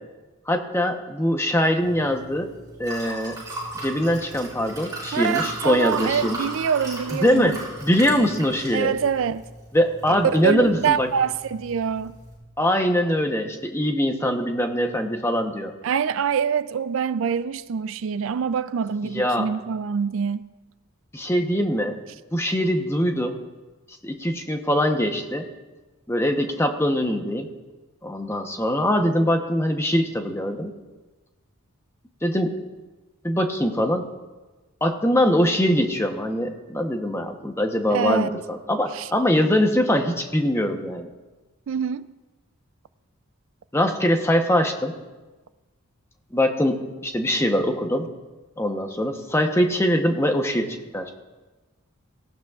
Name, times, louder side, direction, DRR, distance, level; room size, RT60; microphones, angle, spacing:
voice 1, 0.5-2.5 2.8-3.4 3.8-6.4 7.2-8.9 9.7-11.1 12.6-15.7 19.0-19.5 21.1-21.9 22.3-23.4 24.0-25.5 26.1-27.5 28.0-30.7 32.2-32.6 33.2-34.1 34.8-41.1 43.7-44.9 46.3-48.1 48.6-51.1, equal, 10° left, 0.8 m, -22 dB
Liquid, 1.8-12.3, right 2 dB, 15° right, 4.9 m, -37 dB
voice 2, 5.1-7.6 8.7-9.4 10.1-12.2 15.8-20.4 37.9-38.3 38.9-39.1 41.7-42.1, right 7 dB, 65° right, 0.3 m, -25 dB
18.0 x 15.0 x 2.4 m
head